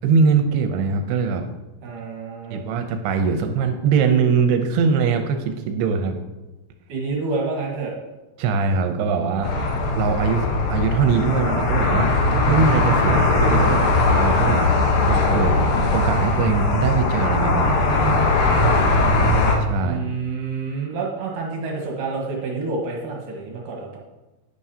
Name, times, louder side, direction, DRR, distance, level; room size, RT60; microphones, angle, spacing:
voice 1, 0.0-1.5 2.5-6.2 8.4-9.5 10.0-12.1 12.4-14.7 15.1-15.6 15.9-18.3 19.6-20.0, right 5 dB, 80° right, 6 dB, 2.6 m, -22 dB
voice 2, 1.8-2.6 6.9-7.9 19.8-24.0, right 4 dB, 65° right, -2 dB, 2.6 m, -28 dB
sound 1, 9.4-19.6, left 2 dB, 80° left, 3.2 m, -19 dB
10.5 x 10.0 x 2.8 m, 1.1 s
omnidirectional pair, 4.7 m